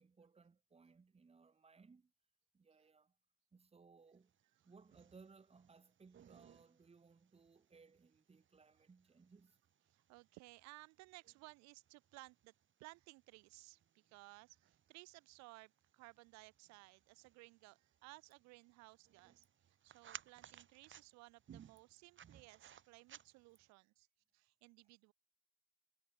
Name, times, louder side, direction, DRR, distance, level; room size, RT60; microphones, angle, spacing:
voice 1, 0.0-2.1 2.5-3.1 3.5-4.3 4.6-9.6, right 4 dB, 20° right, 2.5 m, -64 dB
sound 1, 4.3-23.7, right 9 dB, 35° right, 5.0 m, -63 dB
voice 2, 9.9-12.5 12.8-24.1 24.3-25.1, right 23 dB, 55° right, 1.8 m, -60 dB
figure-of-eight pair, 70°, 33 cm